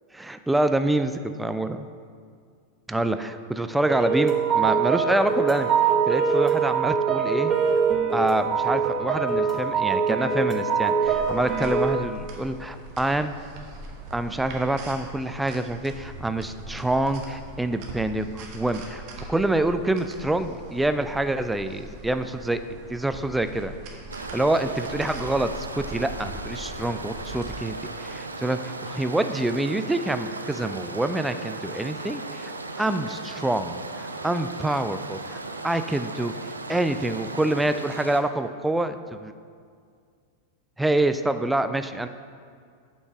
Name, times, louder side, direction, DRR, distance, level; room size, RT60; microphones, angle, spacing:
voice 1, 0.1-1.9 2.9-5.7 6.1-7.5 8.1-13.3 14.1-19.0 19.3-22.6 22.9-23.7 24.2-32.5 32.8-35.4 35.6-39.3 40.8-42.1, right 1 dB, 5° right, 10 dB, 0.3 m, -26 dB
sound 1, 3.9-12.0, right 6 dB, 20° right, 0.8 m, -23 dB
sound 2, 11.0-27.5, right 2 dB, 45° right, 1.1 m, -41 dB
sound 3, 24.1-38.2, right 3 dB, 80° right, 0.4 m, -37 dB
7.9 x 5.3 x 4.4 m, 2.1 s
figure-of-eight pair, 90°, 0 cm